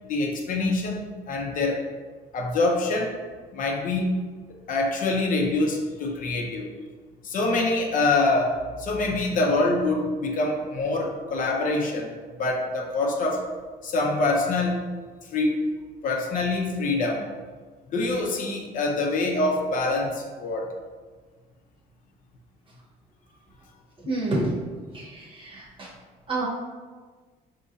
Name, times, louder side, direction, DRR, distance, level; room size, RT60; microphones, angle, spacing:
voice 1, 0.0-1.8 2.3-3.2 3.5-4.2 4.7-6.8 7.2-12.1 12.4-13.5 13.8-14.8 15.3-15.7 16.0-17.3 17.9-20.7, left 2 dB, 50° left, 1 dB, 0.6 m, -25 dB
voice 2, 24.0-24.6 24.9-26.0 26.3-26.5, right 2 dB, 30° right, -3 dB, 0.9 m, -29 dB
3.9 x 2.9 x 2.5 m, 1.4 s
cardioid pair, 110°, 17 cm